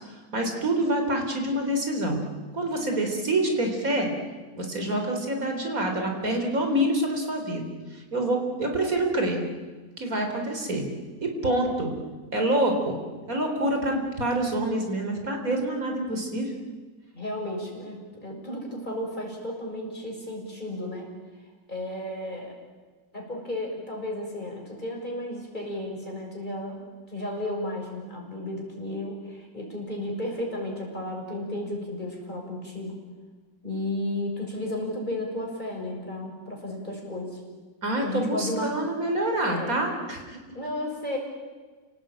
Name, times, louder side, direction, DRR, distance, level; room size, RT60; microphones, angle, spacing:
voice 1, 0.3-2.2 2.5-4.1 4.6-7.6 7.9-9.4 10.0-10.9 11.2-11.9 12.3-12.9 13.3-16.5 37.8-40.4, right 1 dB, 50° right, 3 dB, 4.4 m, -26 dB
voice 2, 17.1-21.1 21.7-22.5 23.1-33.0 33.6-37.4 38.0-38.8 39.4-39.8 40.5-41.2, left 1 dB, 25° left, -1 dB, 6.4 m, -33 dB
29.0 x 18.5 x 8.9 m, 1.4 s
omnidirectional pair, 1.9 m